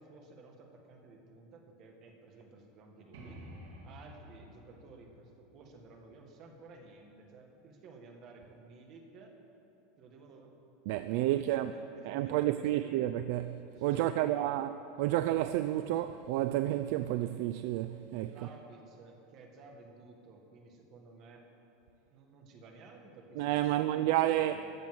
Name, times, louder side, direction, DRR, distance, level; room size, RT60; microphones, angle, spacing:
voice 1, 0.0-3.4 3.8-9.3 10.0-10.6 11.0-13.0 13.7-14.6 18.2-21.4 22.1-24.6, right 3 dB, 35° right, 1.7 m, -54 dB
sound 1, 3.1-6.8, equal, 80° right, 3.1 m, -52 dB
voice 2, 10.9-11.7 12.0-14.7 15.0-18.4 23.4-24.6, right 14 dB, 60° right, 0.4 m, -30 dB
13.5 x 7.2 x 7.8 m
supercardioid pair, 160°, 0 cm